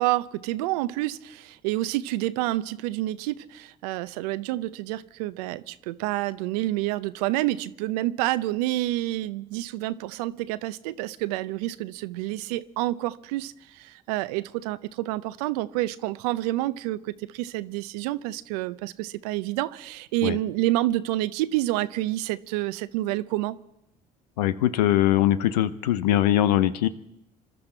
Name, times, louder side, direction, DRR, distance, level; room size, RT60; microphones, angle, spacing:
voice 1, 0.0-23.6, right 16 dB, 85° right, 16 dB, 0.6 m, -28 dB
voice 2, 24.4-26.9, left 13 dB, 90° left, 14 dB, 0.6 m, -21 dB
25.5 x 12.5 x 4.4 m, 0.82 s
hypercardioid pair, 60°, 20 cm